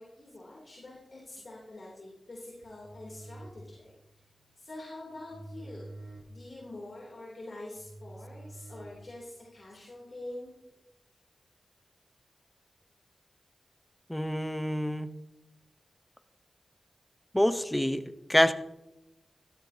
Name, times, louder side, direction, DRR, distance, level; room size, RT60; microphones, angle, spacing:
voice 1, 0.0-3.9 4.6-5.9 6.3-10.5, left 1 dB, 50° left, -4 dB, 3.0 m, -45 dB
sound 1, 2.5-9.5, right 2 dB, 40° right, 4.7 m, -49 dB
voice 2, 14.1-15.1 17.3-18.0 18.3-18.5, left 1 dB, 10° left, 11 dB, 0.7 m, -26 dB
15.0 x 12.5 x 2.8 m, 0.95 s
wide cardioid pair, 70°, 0 cm